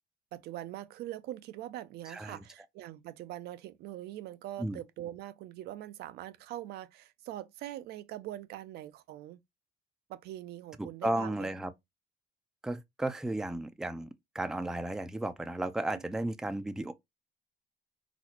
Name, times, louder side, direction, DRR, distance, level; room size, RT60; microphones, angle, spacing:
voice 1, 0.3-9.4 10.1-11.5, right 13 dB, 75° right, 0.4 m, -43 dB
voice 2, 2.1-2.4 4.6-4.8 10.8-11.7 12.6-14.1 14.3-16.9, right 1 dB, 5° right, 0.3 m, -34 dB
4.0 x 2.0 x 2.9 m
cardioid pair, 110°, 17 cm